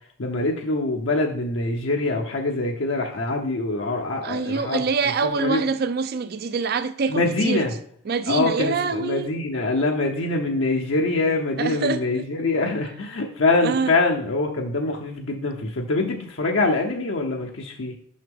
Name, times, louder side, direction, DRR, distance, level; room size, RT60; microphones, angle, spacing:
voice 1, 0.2-4.8 5.3-5.6 7.1-7.7 8.3-17.9, left 2 dB, 70° left, 0.7 m, -24 dB
voice 2, 4.2-7.7 8.1-9.4 11.6-12.3 13.6-13.9, right 5 dB, 50° right, 0.4 m, -25 dB
6.4 x 5.8 x 3.5 m
head